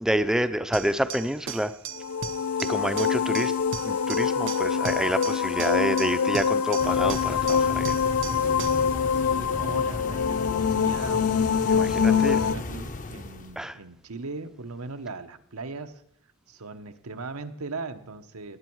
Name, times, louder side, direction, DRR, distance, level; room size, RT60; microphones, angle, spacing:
voice 1, 0.0-1.7 2.7-3.5 3.8-8.0 11.7-12.4 13.6-13.8, equal, 5° right, 11 dB, 0.5 m, -28 dB
sound 1, 0.7-8.9, right 8 dB, 55° right, 0.6 m, -38 dB
sound 2, 1.9-12.5, left 6 dB, 75° left, 0.5 m, -25 dB
sound 3, 6.8-13.6, left 2 dB, 35° left, 0.7 m, -35 dB
voice 2, 9.1-11.4 12.0-16.0 16.5-18.6, right 3 dB, 80° right, 9 dB, 1.0 m, -39 dB
19.0 x 9.7 x 4.7 m, 0.72 s
head